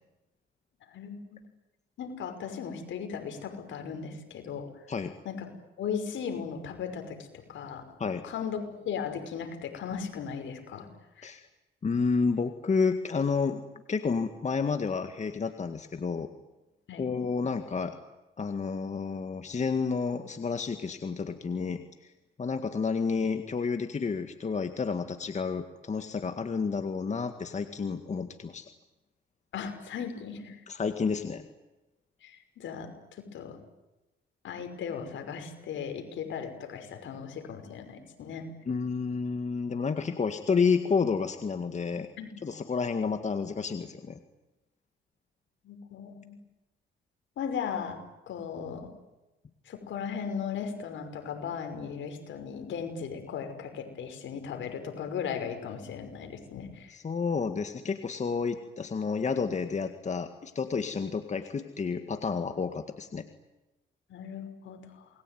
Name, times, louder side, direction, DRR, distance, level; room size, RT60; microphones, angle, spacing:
voice 1, 0.9-1.4 2.0-4.7 5.2-5.5 5.8-7.8 8.2-10.9 11.2-11.3 16.9-17.1 29.5-30.6 32.2-33.6 34.4-38.5 42.2-42.3 45.6-46.4 47.4-48.9 49.7-57.0 64.1-65.1, left 7 dB, 75° left, 6 dB, 5.8 m, -37 dB
voice 2, 11.8-13.6 13.9-16.3 17.0-18.0 18.4-22.1 22.4-28.7 30.7-31.4 38.7-42.1 42.4-44.2 56.9-63.3, left 5 dB, 35° left, 7 dB, 2.0 m, -30 dB
28.5 x 21.0 x 9.5 m, 1.0 s
cardioid pair, 90°, 20 cm